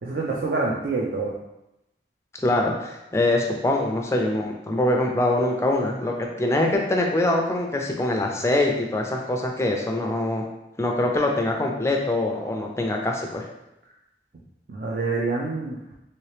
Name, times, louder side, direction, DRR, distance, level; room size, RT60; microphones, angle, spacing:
voice 1, 0.0-1.3 14.7-15.9, right 3 dB, 55° right, -4 dB, 0.5 m, -26 dB
voice 2, 2.4-10.4 10.8-13.5, left 1 dB, 15° left, 1 dB, 0.4 m, -24 dB
3.2 x 2.8 x 3.2 m, 0.90 s
head